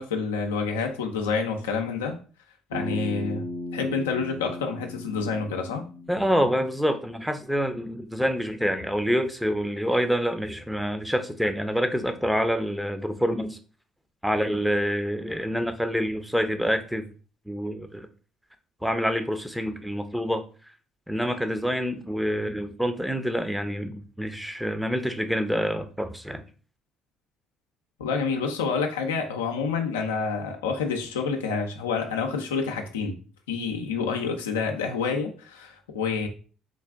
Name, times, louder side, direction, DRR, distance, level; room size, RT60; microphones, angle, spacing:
voice 1, 0.0-2.2 2.7-3.4 3.7-5.8 28.0-33.2 33.5-36.3, left 5 dB, 90° left, 3 dB, 0.5 m, -28 dB
Bass guitar, 2.7-7.0, left 1 dB, 70° right, 1.4 m, -37 dB
voice 2, 6.1-13.6 14.2-17.1 17.5-18.1 18.8-20.4 21.1-26.4, equal, 5° right, 9 dB, 0.6 m, -27 dB
3.8 x 2.4 x 3.4 m, 0.37 s
hypercardioid pair, 55°, 0 cm